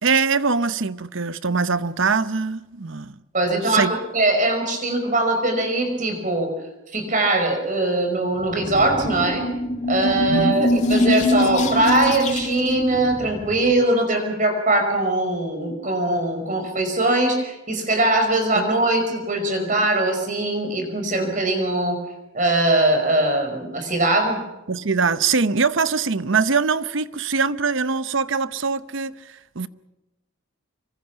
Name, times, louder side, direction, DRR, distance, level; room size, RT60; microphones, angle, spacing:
voice 1, 0.0-3.2 3.6-3.9 10.3-10.5 18.5-18.7 24.7-29.7, right 5 dB, 60° right, 0.8 m, -22 dB
voice 2, 3.3-3.9 4.1-6.5 6.9-9.5 9.9-22.0 22.3-24.4, right 2 dB, 35° right, 5.3 m, -21 dB
sound 1, 8.4-13.8, left 1 dB, 35° left, 2.3 m, -24 dB
26.0 x 23.5 x 5.9 m
head